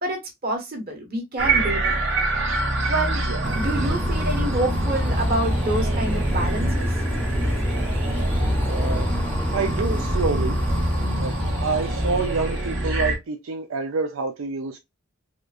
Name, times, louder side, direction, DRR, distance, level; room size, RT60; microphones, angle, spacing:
voice 1, 0.0-1.9 2.9-3.2 3.5-6.9, right 1 dB, 45° right, 1.4 m, -27 dB
sound 1, 1.4-13.2, right 2 dB, 65° right, 1.3 m, -26 dB
voice 2, 3.3-3.6 8.6-9.1 9.5-10.6 11.2-11.3 11.6-14.8, right 4 dB, 80° right, 0.5 m, -27 dB
sound 2, 3.4-13.0, left 1 dB, 10° left, 0.6 m, -27 dB
4.3 x 2.4 x 2.4 m
head